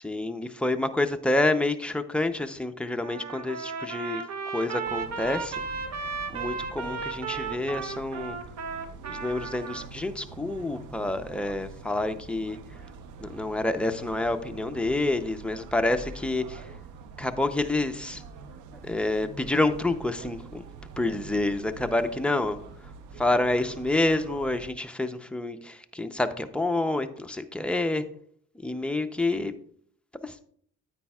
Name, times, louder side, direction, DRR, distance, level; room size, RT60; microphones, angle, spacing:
voice 1, 0.0-4.2 4.5-5.6 5.9-6.0 6.3-8.4 9.1-12.8 13.2-16.7 17.2-18.2 18.8-20.6 21.0-22.9 23.2-28.0 28.5-29.5 30.2-30.4, left 2 dB, 5° left, 6 dB, 0.6 m, -28 dB
Trumpet, 3.0-9.9, right 5 dB, 60° right, 1.0 m, -35 dB
sound 1, 4.8-24.7, right 4 dB, 80° right, 0.7 m, -45 dB
9.7 x 8.6 x 2.4 m, 0.62 s
cardioid pair, 90°, 30 cm